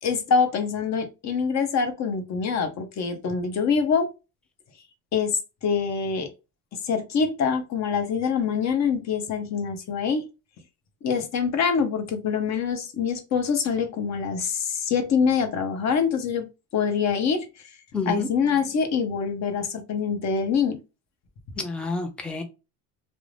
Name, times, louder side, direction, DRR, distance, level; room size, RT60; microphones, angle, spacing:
voice 1, 0.0-4.1 5.1-6.3 6.7-10.3 11.0-16.5 16.7-17.5 18.1-20.8, left 6 dB, 40° left, 0.7 m, -25 dB
voice 2, 17.9-18.3 21.6-22.4, left 4 dB, 5° left, 0.3 m, -28 dB
2.4 x 2.0 x 3.2 m
cardioid pair, 120°, 41 cm